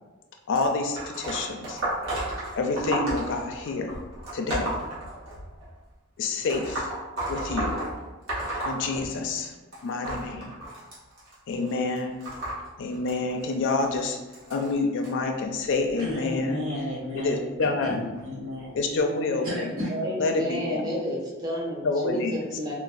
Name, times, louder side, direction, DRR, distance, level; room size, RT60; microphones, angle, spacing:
voice 1, 0.5-1.8 2.6-3.9 4.3-4.8 6.2-6.9 7.3-7.8 8.6-9.5 9.8-10.6 11.5-12.2 12.8-14.2 14.5-16.6 17.1-18.1 18.7-19.7 20.2-21.0 21.8-22.4, left 3 dB, 60° left, 4 dB, 0.4 m, -28 dB
sound 1, 0.5-5.7 6.4-9.5 9.7-15.1 15.9-16.1 17.2-17.3 18.2-18.3 19.0-19.1, right 1 dB, 60° right, 1.1 m, -33 dB
voice 2, 16.0-18.8 19.4-19.9, left 1 dB, 85° right, -6 dB, 1.1 m, -33 dB
voice 3, 19.4-22.7, equal, 20° right, -3 dB, 0.5 m, -31 dB
3.9 x 2.0 x 2.4 m, 1.2 s
head